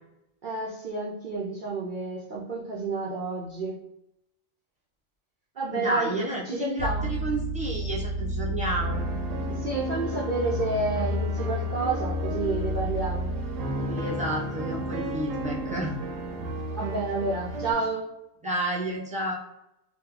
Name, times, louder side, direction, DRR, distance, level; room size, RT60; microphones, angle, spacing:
voice 1, 0.4-3.8 5.6-6.2 6.5-7.1 9.5-13.3 16.7-18.0, right 3 dB, 65° right, -4 dB, 0.5 m, -30 dB
voice 2, 5.7-9.0 13.8-15.9 18.4-19.3, right 1 dB, 10° right, -5 dB, 0.6 m, -31 dB
sound 1, 6.8-16.4, left 1 dB, 70° left, 0.9 m, -32 dB
sound 2, 8.8-17.7, right 1 dB, 80° right, 1.0 m, -34 dB
3.0 x 2.1 x 3.6 m, 0.85 s
omnidirectional pair, 1.4 m